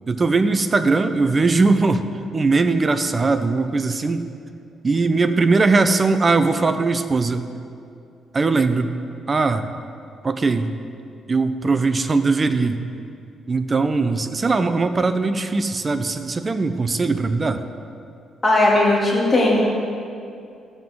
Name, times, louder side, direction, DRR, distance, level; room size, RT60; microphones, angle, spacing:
voice 1, 0.1-2.0 2.3-4.2 4.8-7.5 8.3-8.9 9.3-9.7 10.2-10.8 11.3-12.8 13.5-17.6, right 3 dB, 30° right, 10 dB, 0.6 m, -20 dB
voice 2, 18.4-19.6, left 2 dB, 20° left, -5 dB, 2.6 m, -17 dB
13.5 x 7.6 x 3.7 m, 2.5 s
cardioid pair, 90°, 0 cm